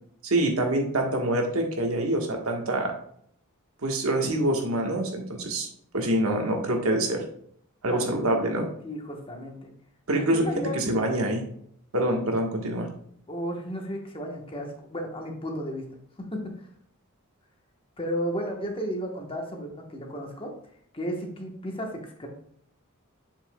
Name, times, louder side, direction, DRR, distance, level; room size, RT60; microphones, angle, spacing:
voice 1, 0.2-2.9 3.8-5.7 5.9-7.2 7.8-8.7 10.1-10.4 10.7-11.4 11.9-12.9, right 1 dB, 80° right, 2 dB, 1.4 m, -25 dB
voice 2, 7.9-8.4 8.8-9.7 10.1-10.8 13.3-15.8 16.2-16.7 18.0-20.5 20.9-22.3, equal, 25° left, 2 dB, 1.1 m, -33 dB
7.5 x 6.0 x 2.3 m, 0.64 s
head